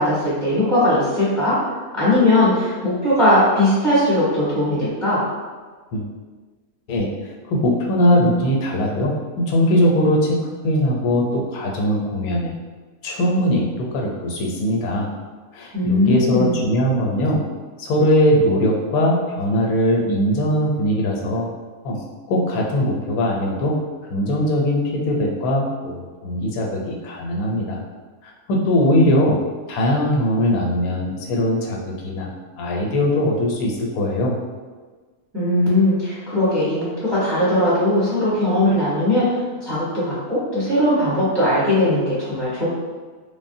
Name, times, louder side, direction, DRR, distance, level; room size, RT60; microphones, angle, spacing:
voice 1, 0.0-1.6 1.9-5.2 15.7-16.6 35.3-39.3 39.6-42.7, left 1 dB, 25° right, -9 dB, 0.7 m, -19 dB
voice 2, 7.5-10.4 10.6-12.5 13.0-15.1 15.5-17.4 17.8-21.5 21.8-22.0 22.3-23.7 24.1-27.8 28.2-29.4 29.7-32.3 32.6-34.4, equal, 85° left, -1 dB, 1.1 m, -20 dB
3.4 x 2.0 x 2.6 m, 1.4 s
omnidirectional pair, 1.5 m